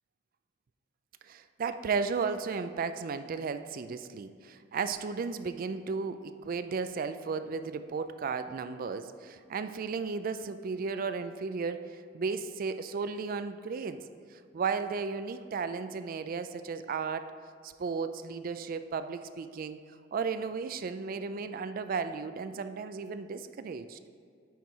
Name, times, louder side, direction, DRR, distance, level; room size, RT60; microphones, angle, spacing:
voice 1, 1.3-14.1 14.3-17.3 17.6-19.8 20.1-24.0, right 5 dB, 50° right, 11 dB, 0.4 m, -34 dB
9.2 x 4.5 x 4.8 m, 2.3 s
head